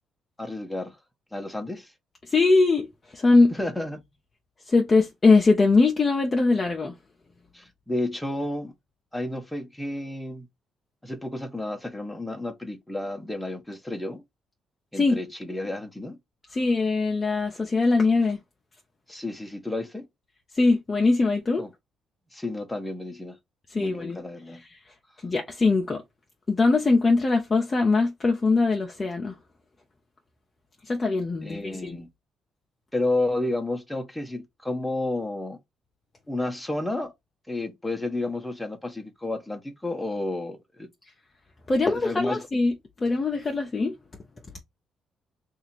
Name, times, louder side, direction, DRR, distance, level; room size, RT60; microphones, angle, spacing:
voice 1, 0.4-1.0 1.3-1.9 3.5-4.0 7.5-8.7 9.1-10.5 11.0-14.2 14.9-16.2 19.1-20.1 21.6-21.7 22.3-23.4 23.7-24.6 31.4-32.1 32.9-35.6 36.3-37.1 37.5-40.9 41.9-42.4, left 2 dB, 5° left, 0.9 m, -31 dB
voice 2, 2.3-2.9 3.1-3.5 4.7-6.9 14.9-15.2 16.5-18.4 20.5-21.6 23.7-24.2 25.2-26.0 26.5-29.3 30.9-32.0 41.7-42.7 43.0-43.9, left 3 dB, 30° left, 0.7 m, -21 dB
2.7 x 2.5 x 4.2 m
supercardioid pair, 75°, 0 cm